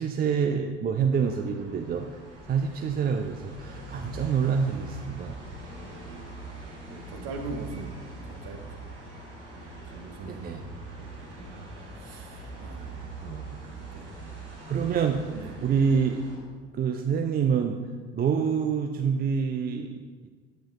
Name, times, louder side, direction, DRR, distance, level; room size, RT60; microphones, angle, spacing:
voice 1, 0.0-2.2 2.4-5.4 10.2-10.6 13.2-13.6 14.7-15.3 15.6-16.2 16.7-17.8 18.1-20.3, right 6 dB, 25° right, 4 dB, 0.6 m, -27 dB
sound 1, 1.1-16.4, right 2 dB, 85° right, 1.8 m, -42 dB
voice 2, 6.9-7.9 8.2-8.9 9.5-10.5 11.0-13.1 13.6-14.1 15.3-15.5, right 3 dB, 50° right, 2 dB, 1.4 m, -42 dB
8.9 x 5.1 x 5.3 m, 1.5 s
figure-of-eight pair, 55°, 34 cm